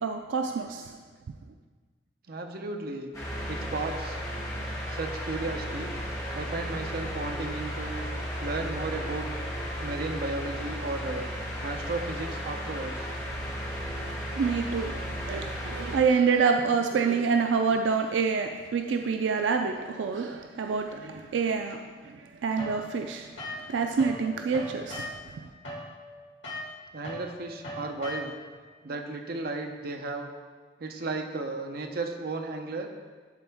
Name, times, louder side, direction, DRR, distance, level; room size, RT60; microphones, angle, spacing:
voice 1, 0.0-0.9 14.4-14.9 15.2-21.8 22.0-25.4, right 5 dB, 85° right, 5 dB, 0.4 m, -27 dB
voice 2, 2.3-3.1 3.5-4.2 4.9-6.0 6.3-8.0 8.4-9.3 9.8-11.3 11.6-13.1 26.9-28.3 28.8-30.3 30.8-32.9, right 3 dB, 55° right, 4 dB, 0.7 m, -34 dB
sound 1, 3.1-16.0, equal, 20° left, 1.5 m, -34 dB
sound 2, 22.6-24.2 24.5-28.6, left 1 dB, 90° left, 2.0 m, -39 dB
11.5 x 3.9 x 3.5 m, 1.5 s
head